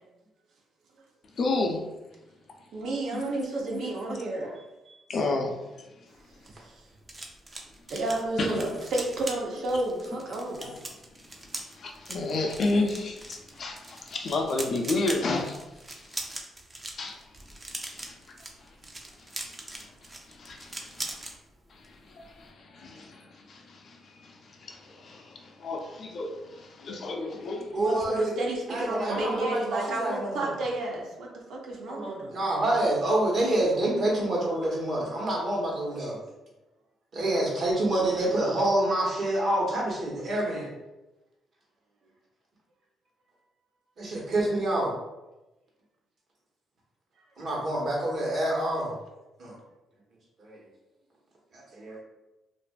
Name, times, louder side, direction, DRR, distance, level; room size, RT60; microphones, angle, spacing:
voice 1, 1.4-1.8 3.1-3.2 4.1-4.2 5.1-5.5 8.4-8.8 10.6-10.8 11.8-15.6 15.9-16.4 17.0-17.2 17.9-18.1 19.7-19.9 20.4-21.2 21.7-27.7, left 2 dB, 55° left, 0.4 m, -31 dB
voice 2, 2.7-4.6 6.6-6.8 7.9-10.7 27.8-32.4, right 2 dB, 75° right, 0.6 m, -31 dB
sound 1, 6.1-21.3 21.7-21.9 22.2-22.5, right 2 dB, 25° right, 0.4 m, -41 dB
voice 3, 27.7-28.3 28.7-30.5 31.9-36.2 37.1-40.7 44.0-44.9 47.4-48.9 49.4-49.5 50.4-50.5 51.5-52.0, right 1 dB, 55° right, 1.0 m, -27 dB
2.5 x 2.4 x 2.2 m
cardioid pair, 90°, 0 cm